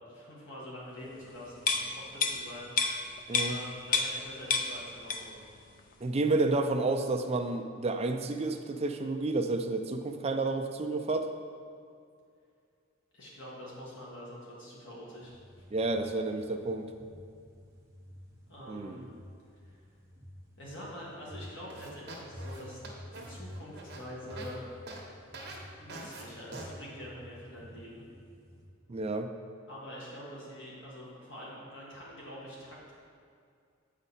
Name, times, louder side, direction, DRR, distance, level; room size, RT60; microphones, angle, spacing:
voice 1, 0.0-3.0 3.4-5.4 6.5-6.9 13.1-15.7 18.5-19.0 19.6-19.8 20.6-22.8 23.1-24.6 25.8-28.0 29.7-32.9, equal, 60° left, -5 dB, 1.8 m, -46 dB
sound 1, 1.6-4.2 4.5-5.5 5.8-5.9, left 4 dB, 40° left, 0.4 m, -30 dB
voice 2, 6.0-11.3 15.7-16.9 18.7-19.1 28.9-29.3, right 2 dB, 30° right, 5 dB, 0.4 m, -30 dB
sound 2, 15.2-28.7, equal, 15° right, 1.0 m, -50 dB
sound 3, 21.7-24.5 24.9-25.0 25.3-25.6 25.9-26.2 26.5-26.7, right 2 dB, 50° right, 1.2 m, -44 dB
8.0 x 5.1 x 4.2 m, 2.3 s
head